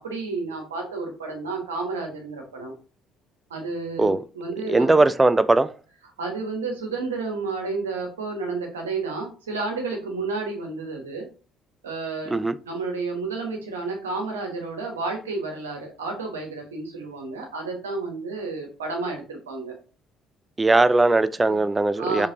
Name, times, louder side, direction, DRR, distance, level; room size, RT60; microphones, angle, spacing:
voice 1, 0.0-2.7 3.5-5.0 6.2-11.3 11.8-19.7 21.4-21.6 22.0-22.3, right 3 dB, 85° right, 1.1 m, -31 dB
voice 2, 4.7-5.7 12.3-12.5 20.6-22.3, right 2 dB, 20° right, 0.4 m, -19 dB
4.9 x 3.3 x 2.7 m
hypercardioid pair, 55°, 0 cm